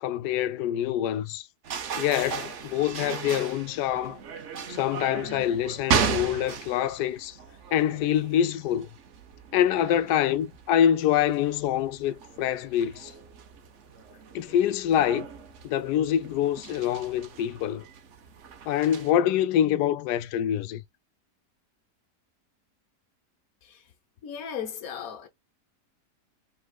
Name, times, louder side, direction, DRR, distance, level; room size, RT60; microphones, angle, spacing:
voice 1, 0.0-1.5 2.0-4.2 4.7-7.4 7.7-8.9 9.5-13.1 14.3-15.3 15.6-17.8 18.7-20.8, left 10 dB, 85° left, 1.2 m, -25 dB
sound 1, 1.6-19.1, right 6 dB, 55° right, 1.0 m, -36 dB
voice 2, 23.6-23.9 24.2-25.3, left 8 dB, 60° left, 1.4 m, -36 dB
5.4 x 3.3 x 2.3 m
omnidirectional pair, 1.7 m